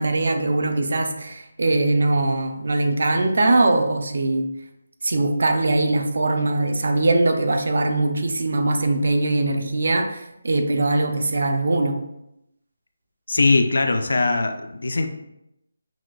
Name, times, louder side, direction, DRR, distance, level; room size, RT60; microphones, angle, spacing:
voice 1, 0.0-4.5 5.0-12.0, right 2 dB, 50° right, 6 dB, 0.5 m, -21 dB
voice 2, 13.3-15.1, left 3 dB, 60° left, 6 dB, 0.4 m, -20 dB
6.0 x 2.3 x 2.4 m, 0.84 s
hypercardioid pair, 180°, 0 cm